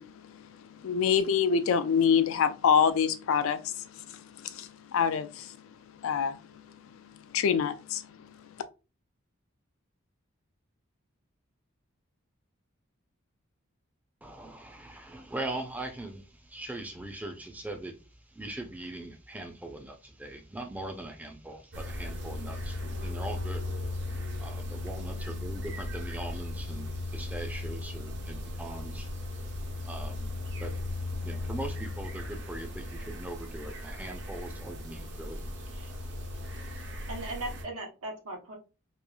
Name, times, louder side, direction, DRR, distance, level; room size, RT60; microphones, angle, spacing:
voice 1, 0.0-5.6 6.0-6.8 7.3-8.4, left 7 dB, 70° left, 0.3 m, -27 dB
voice 2, 14.2-36.9, right 2 dB, 5° right, 0.4 m, -41 dB
sound 1, 21.7-37.6, left 2 dB, 55° right, 0.6 m, -37 dB
voice 3, 37.1-38.6, right 2 dB, 90° right, 0.9 m, -38 dB
3.0 x 2.3 x 2.2 m
head